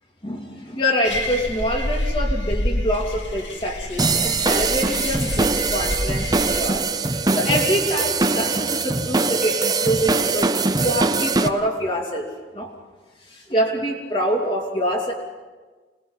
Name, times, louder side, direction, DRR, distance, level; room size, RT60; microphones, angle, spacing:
voice 1, 0.2-12.7 13.2-15.1, equal, 30° left, 0 dB, 3.0 m, -25 dB
sound 1, 1.0-6.7, left 1 dB, 80° left, 3.0 m, -27 dB
sound 2, 4.0-11.5, right 3 dB, 20° right, 0.7 m, -22 dB
26.0 x 20.0 x 5.7 m, 1.3 s
head